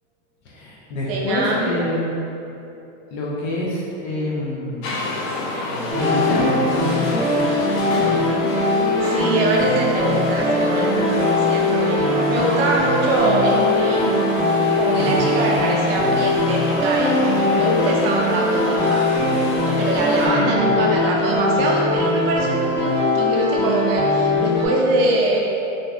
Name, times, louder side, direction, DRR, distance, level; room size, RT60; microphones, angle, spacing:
voice 1, 0.4-2.1 3.1-5.1 5.7-7.5 7.9-8.5 15.0-15.3 20.2-20.6, left 1 dB, 40° left, -5 dB, 0.4 m, -27 dB
voice 2, 1.0-1.8 9.0-14.1 14.8-19.1 19.8-25.4, right 2 dB, 50° right, -2 dB, 0.5 m, -23 dB
sound 1, 4.8-20.3, left 2 dB, 85° left, 0.6 m, -28 dB
sound 2, 5.9-24.7, left 2 dB, 25° left, 1.2 m, -21 dB
2.6 x 2.3 x 3.2 m, 2.9 s
supercardioid pair, 165°, 39 cm